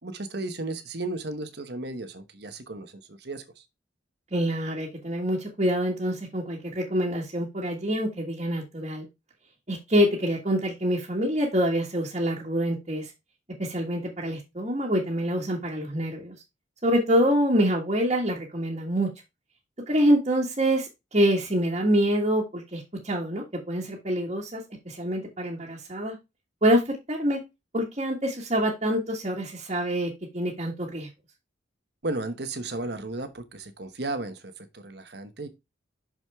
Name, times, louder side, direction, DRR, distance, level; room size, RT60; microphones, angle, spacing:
voice 1, 0.0-3.4 32.0-35.5, right 2 dB, 55° right, 1.1 m, -34 dB
voice 2, 4.3-9.1 9.7-13.1 13.6-16.4 16.8-19.1 19.9-26.2 26.6-27.4 27.7-31.1, equal, 35° right, 1.7 m, -26 dB
6.3 x 6.3 x 3.5 m
head